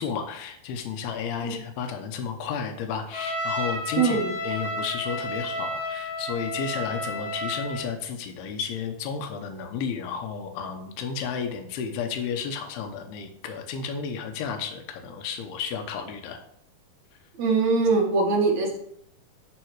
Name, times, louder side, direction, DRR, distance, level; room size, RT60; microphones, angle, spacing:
voice 1, 0.0-4.2 4.4-16.4, left 6 dB, 85° left, 5 dB, 2.9 m, -32 dB
Trumpet, 3.1-7.8, left 1 dB, 5° right, 2.2 m, -31 dB
voice 2, 4.0-4.3 17.4-18.8, right 4 dB, 55° right, -1 dB, 2.4 m, -22 dB
11.0 x 4.2 x 4.6 m, 0.69 s
omnidirectional pair, 4.4 m